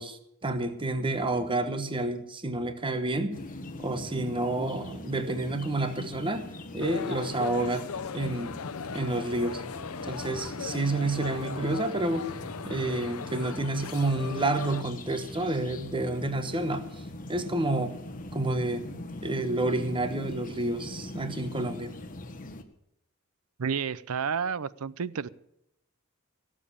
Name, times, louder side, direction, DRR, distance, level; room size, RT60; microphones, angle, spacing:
voice 1, 0.0-3.4 3.8-6.4 6.7-7.8 8.1-8.5 8.9-9.6 10.0-12.3 12.6-17.9 18.3-22.0, right 2 dB, 25° right, 9 dB, 1.1 m, -29 dB
sound 1, 3.3-22.6, left 1 dB, 40° left, 1.4 m, -42 dB
people waiting for symphony, 6.8-14.8, left 6 dB, 75° left, 0.7 m, -38 dB
voice 2, 23.6-25.3, right 6 dB, 75° right, 18 dB, 0.6 m, -30 dB
17.5 x 7.5 x 8.6 m, 0.78 s
head